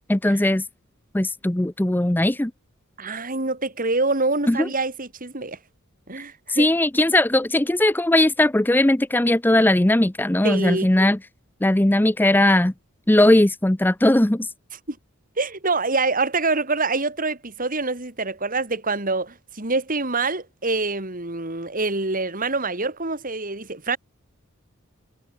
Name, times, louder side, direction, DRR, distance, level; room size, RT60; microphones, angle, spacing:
voice 1, 0.1-0.6 1.1-2.5 4.5-4.7 6.5-11.2 11.6-12.7 13.1-14.5, left 1 dB, 10° left, 0.6 m, -19 dB
voice 2, 3.0-5.6 6.1-6.7 10.4-10.9 14.9-15.0 15.4-24.0, right 3 dB, 40° right, 4.1 m, -25 dB
head